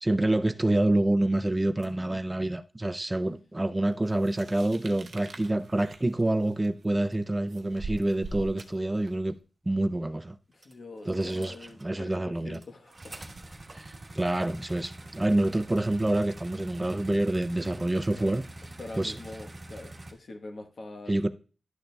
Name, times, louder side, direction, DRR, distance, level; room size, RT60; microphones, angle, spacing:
voice 1, 0.0-9.4 9.7-10.4 11.1-11.5 11.8-12.6 13.7-18.4 19.0-19.1 21.1-21.3, right 1 dB, 20° right, 0.4 m, -27 dB
sound 1, 1.8-1.9 6.3-6.4 10.6-12.0 12.4-20.1, right 1 dB, 40° right, 1.1 m, -45 dB
sound 2, 4.2-9.3, right 2 dB, 85° right, 0.7 m, -43 dB
voice 2, 10.5-13.2 18.1-18.3 18.8-21.3, left 2 dB, 75° left, 1.0 m, -44 dB
11.5 x 6.6 x 2.2 m
wide cardioid pair, 90°, 0 cm